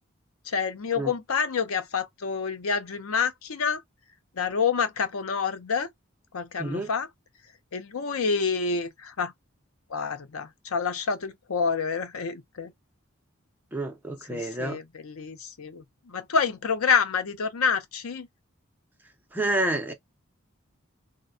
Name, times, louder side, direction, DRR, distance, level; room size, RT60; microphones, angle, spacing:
voice 1, 0.5-3.8 4.4-5.9 6.3-7.1 7.7-9.3 9.9-12.7 14.3-18.3, left 5 dB, 85° left, 0.6 m, -28 dB
voice 2, 6.6-6.9 13.7-14.8 19.3-19.9, right 2 dB, 10° right, 0.6 m, -29 dB
3.8 x 2.1 x 2.5 m
head